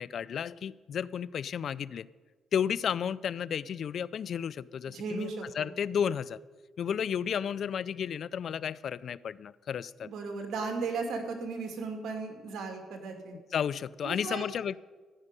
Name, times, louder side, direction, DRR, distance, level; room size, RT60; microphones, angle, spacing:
voice 1, 0.0-2.1 2.5-6.4 6.8-10.1 13.3-14.8, left 8 dB, 60° left, 20 dB, 0.4 m, -33 dB
voice 2, 4.9-5.7 10.0-13.4 14.0-14.4, right 4 dB, 70° right, 4 dB, 2.6 m, -36 dB
13.5 x 6.5 x 9.7 m, 1.3 s
cardioid pair, 90°, 0 cm